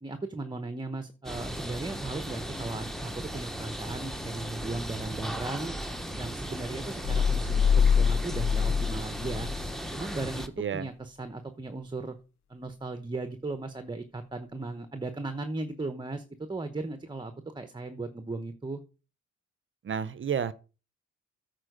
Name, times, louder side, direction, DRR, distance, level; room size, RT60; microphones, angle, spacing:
voice 1, 0.0-5.8 6.2-9.5 9.9-12.2 12.5-18.8, right 3 dB, 15° right, 0.9 m, -37 dB
sound 1, 1.2-10.5, equal, ahead, 1.1 m, -37 dB
sound 2, 7.0-9.7, left 6 dB, 65° left, 0.8 m, -25 dB
voice 2, 19.8-20.5, right 7 dB, 40° right, 0.7 m, -30 dB
8.9 x 4.5 x 6.5 m
cardioid pair, 90°, 30 cm